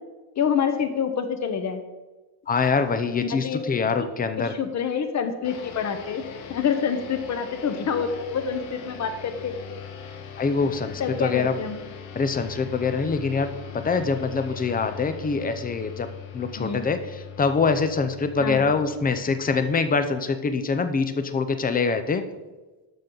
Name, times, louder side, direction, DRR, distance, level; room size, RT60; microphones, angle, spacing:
voice 1, 0.4-1.8 3.3-4.1 4.4-6.2 6.5-9.5 11.0-11.8 16.5-16.8 18.4-18.7, left 7 dB, 35° left, 8 dB, 0.9 m, -27 dB
voice 2, 2.5-4.5 10.4-11.6 12.2-13.5 13.7-16.1 16.3-17.0 17.4-22.2, left 4 dB, 20° left, 9 dB, 0.4 m, -24 dB
sound 1, 5.4-20.3, left 8 dB, 80° left, 1.4 m, -41 dB
12.0 x 6.0 x 3.9 m, 1.2 s
cardioid pair, 165°, 46 cm